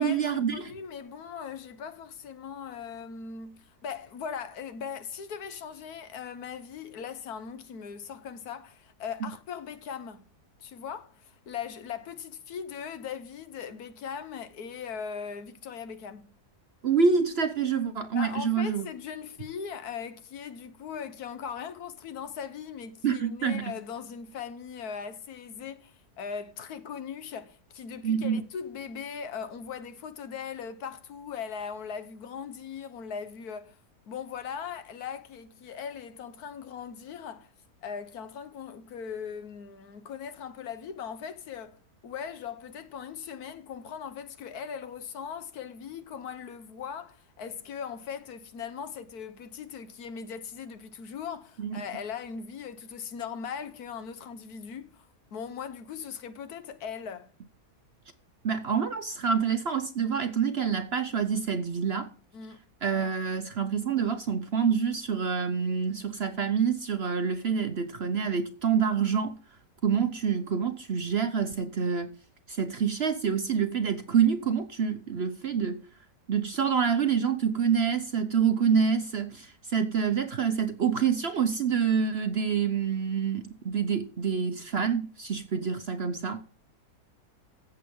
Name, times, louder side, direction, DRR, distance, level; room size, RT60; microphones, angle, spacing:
voice 1, 0.0-0.7 16.8-18.9 23.0-23.7 28.0-28.4 51.6-51.8 58.4-62.1 62.8-69.3 69.8-72.1 72.5-75.8 76.3-86.4, right 6 dB, 55° right, 0.8 m, -27 dB
voice 2, 0.5-10.3 10.6-16.3 18.1-33.8 34.1-37.5 37.8-57.3 62.3-62.6, left 7 dB, 70° left, 1.4 m, -39 dB
14.5 x 7.8 x 3.6 m
omnidirectional pair, 1.7 m